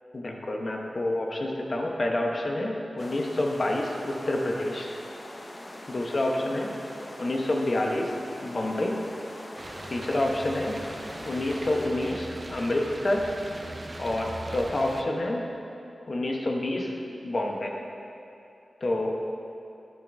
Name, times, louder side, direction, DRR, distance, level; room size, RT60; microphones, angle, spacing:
voice 1, 0.1-4.9 5.9-6.7 7.2-9.0 9.9-10.8 11.3-13.3 14.0-15.5 16.1-17.7 18.8-19.1, left 1 dB, 45° left, 0 dB, 1.0 m, -28 dB
sound 1, 3.0-11.9, left 1 dB, 25° left, 0.7 m, -43 dB
sound 2, 9.6-15.0, right 1 dB, 30° right, 0.5 m, -40 dB
10.5 x 10.5 x 2.7 m, 2.8 s
wide cardioid pair, 105°, 0 cm